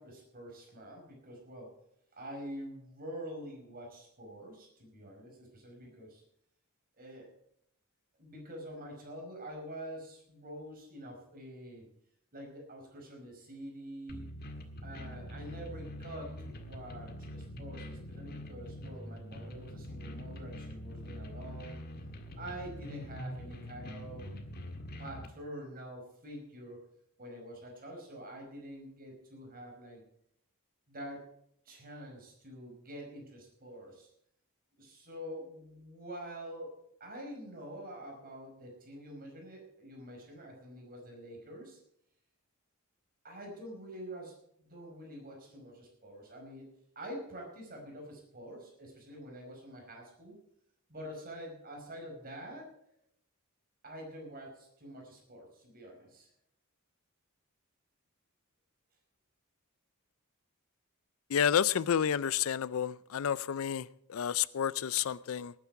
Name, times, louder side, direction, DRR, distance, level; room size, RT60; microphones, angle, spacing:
voice 1, 0.0-1.7 2.1-6.2 7.0-7.3 8.2-11.9 12.3-14.2 14.8-21.8 22.4-24.3 25.0-26.8 27.2-30.0 30.9-31.3 31.7-34.1 34.8-36.7 37.0-41.8 43.2-46.7 47.0-50.3 50.9-52.7 53.8-56.3, equal, 45° right, 5.2 m, -46 dB
sound 1, 14.1-25.3, equal, 45° left, 1.8 m, -44 dB
voice 2, 61.3-65.5, left 8 dB, 65° left, 0.4 m, -30 dB
19.0 x 9.6 x 4.6 m
head